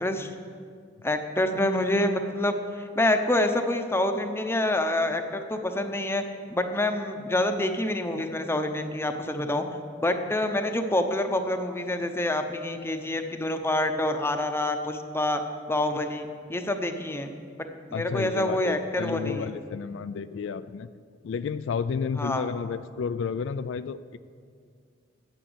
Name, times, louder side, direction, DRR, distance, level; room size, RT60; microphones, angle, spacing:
voice 1, 1.0-6.2 6.5-9.6 10.0-15.4 15.7-17.3 17.9-19.5 22.2-22.5, left 1 dB, 15° left, 6 dB, 0.7 m, -27 dB
voice 2, 17.9-20.9 21.2-24.2, left 6 dB, 70° left, 13 dB, 0.3 m, -31 dB
10.0 x 8.1 x 7.9 m, 2.2 s
head